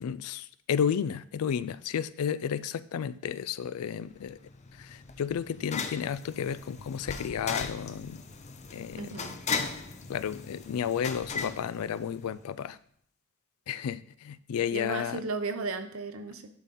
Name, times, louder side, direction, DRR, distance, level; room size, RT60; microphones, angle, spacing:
voice 1, 0.0-4.4 4.8-8.2 8.7-9.1 10.1-12.8 13.7-15.2, left 8 dB, 90° left, 16 dB, 0.4 m, -32 dB
sound 1, 4.1-12.5, left 5 dB, 30° left, 0.5 m, -38 dB
voice 2, 9.0-9.4 14.7-16.5, right 3 dB, 70° right, 8 dB, 0.8 m, -35 dB
10.5 x 4.1 x 3.8 m, 0.64 s
head